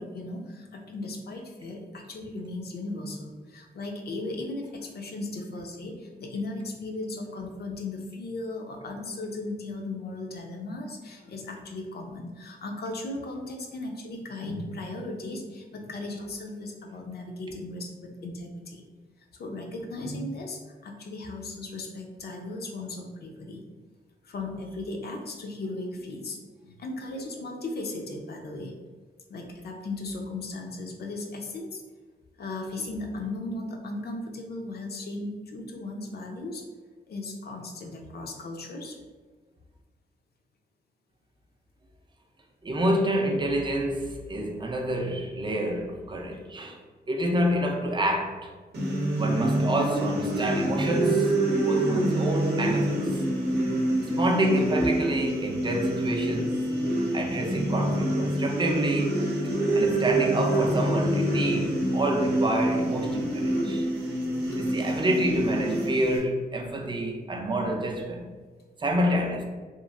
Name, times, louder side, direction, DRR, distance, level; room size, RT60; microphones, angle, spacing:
voice 1, 0.0-18.8 19.3-23.6 24.2-28.8 29.3-31.8 32.4-36.6 37.1-39.0, left 2 dB, 70° left, 0.5 m, -36 dB
voice 2, 42.6-46.8 47.1-48.5 49.2-51.4 51.6-53.0 54.0-56.7 57.1-63.9 64.6-68.3 68.8-69.4, right 1 dB, 30° right, 0.4 m, -28 dB
sound 1, 48.7-66.2, right 1 dB, 75° right, 0.6 m, -26 dB
3.0 x 2.4 x 2.3 m
wide cardioid pair, 110°, 17 cm